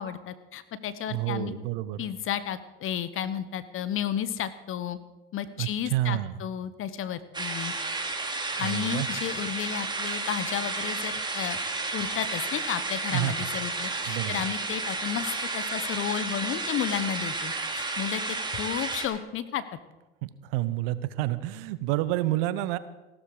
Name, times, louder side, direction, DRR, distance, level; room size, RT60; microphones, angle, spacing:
voice 1, 0.0-1.5 2.0-5.0 5.3-7.7 8.6-11.6 11.9-19.6, left 10 dB, 45° left, 14 dB, 1.2 m, -32 dB
voice 2, 1.1-2.0 5.6-6.4 8.6-9.1 13.1-13.3 14.1-14.4 20.2-22.8, right 15 dB, 70° right, 15 dB, 0.9 m, -29 dB
sound 1, 7.3-19.1, right 3 dB, 15° right, 2.5 m, -32 dB
15.5 x 13.0 x 5.0 m, 1.1 s
hypercardioid pair, 75°, 29 cm